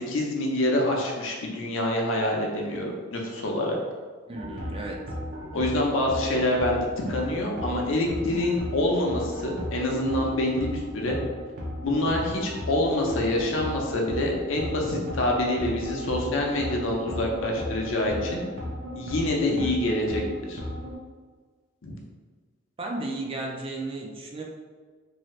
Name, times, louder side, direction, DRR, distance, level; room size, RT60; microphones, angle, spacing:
voice 1, 0.0-3.8 5.5-11.2 11.8-18.4 18.9-20.2 20.5-20.6 21.8-22.0, left 1 dB, 70° left, 0 dB, 0.6 m, -26 dB
voice 2, 4.3-5.0 19.5-19.7 22.8-24.4, right 2 dB, 25° right, 0 dB, 0.3 m, -34 dB
sound 1, 4.3-21.0, equal, 55° right, 0.7 m, -35 dB
2.7 x 2.5 x 3.1 m, 1.5 s
head